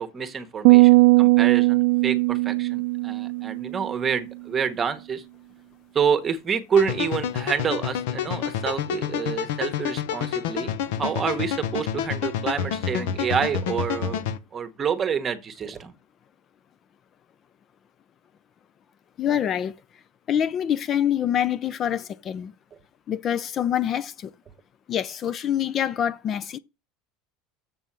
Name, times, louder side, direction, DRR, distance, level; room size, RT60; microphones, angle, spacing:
voice 1, 0.0-5.2 5.9-10.7 11.0-14.2 14.5-15.9, right 7 dB, 25° right, 1.1 m, -28 dB
sound 1, 0.6-4.1, right 24 dB, 60° right, 0.4 m, -18 dB
sound 2, 6.8-14.4, left 9 dB, 80° left, 0.9 m, -28 dB
voice 2, 19.2-19.7 20.3-22.5 23.1-24.3 24.9-26.6, left 10 dB, 35° left, 0.4 m, -25 dB
7.5 x 5.3 x 7.4 m
supercardioid pair, 145°, 0 cm